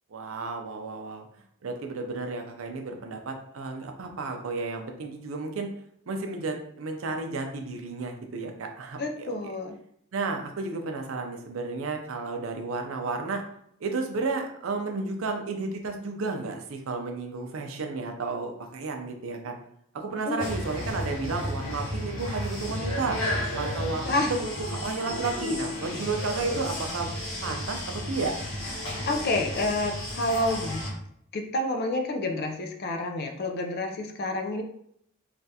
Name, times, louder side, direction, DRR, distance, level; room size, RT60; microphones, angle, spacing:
voice 1, 0.1-1.3 1.6-5.7 6.1-9.3 10.1-13.4 13.8-19.6 19.9-23.2 23.5-27.1 27.4-28.4, right 3 dB, 75° right, 4 dB, 0.5 m, -32 dB
voice 2, 9.0-9.7 20.1-20.5 24.0-24.3 25.2-25.3 29.1-30.9 31.3-34.6, left 2 dB, 50° left, 4 dB, 0.4 m, -29 dB
sound 1, 20.4-30.9, left 1 dB, 85° left, 1.1 m, -33 dB
3.4 x 2.4 x 2.7 m, 0.69 s
head